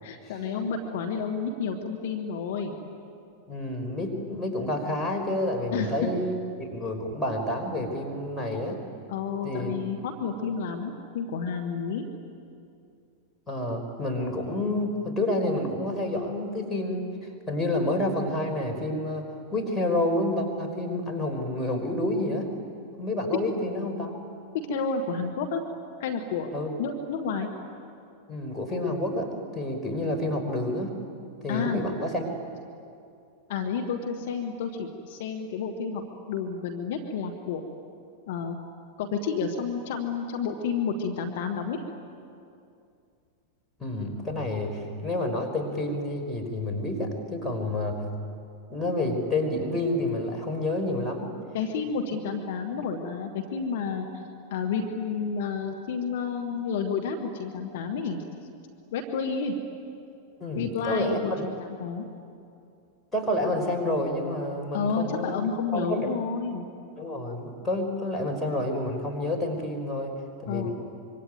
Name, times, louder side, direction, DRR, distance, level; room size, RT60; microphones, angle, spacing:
voice 1, 0.0-2.8 5.7-6.1 9.1-12.0 24.7-25.6 26.0-26.5 26.8-27.5 31.5-31.8 33.5-36.0 36.3-37.6 38.3-38.6 39.0-41.8 51.5-54.1 54.5-58.2 58.9-59.6 60.6-62.1 64.7-66.7 70.5-70.7, left 5 dB, 55° left, 5 dB, 2.1 m, -30 dB
voice 2, 3.5-8.8 9.4-9.7 13.5-17.0 17.5-19.3 19.5-22.5 23.0-24.1 26.5-26.7 28.3-30.9 31.4-32.3 43.8-48.0 48.7-51.3 60.4-61.4 63.1-65.4 65.7-66.1 67.0-70.1 70.4-70.7, left 1 dB, 5° left, 0 dB, 5.5 m, -29 dB
25.5 x 24.5 x 9.5 m, 2.5 s
figure-of-eight pair, 90°, 0 cm